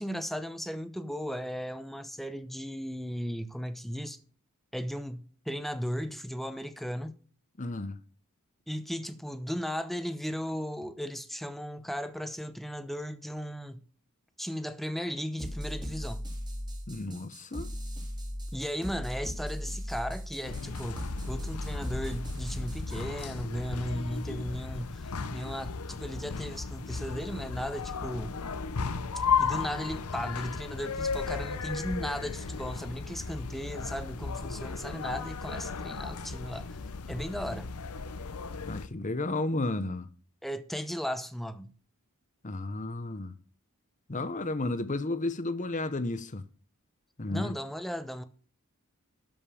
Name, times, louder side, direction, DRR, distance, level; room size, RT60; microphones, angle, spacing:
voice 1, 0.0-4.2 4.7-7.2 8.7-13.8 14.4-16.2 18.5-28.4 29.1-36.8 37.1-37.7 40.4-41.7 47.3-48.2, equal, ahead, 0.8 m, -36 dB
voice 2, 7.6-8.0 16.9-17.7 38.7-40.1 42.4-43.3 44.1-46.5 47.2-47.5, left 2 dB, 35° left, 0.9 m, -32 dB
sound 1, 15.4-23.1, equal, 20° right, 2.4 m, -38 dB
sound 2, 20.4-38.9, left 5 dB, 80° left, 0.8 m, -35 dB
12.5 x 5.4 x 6.9 m
head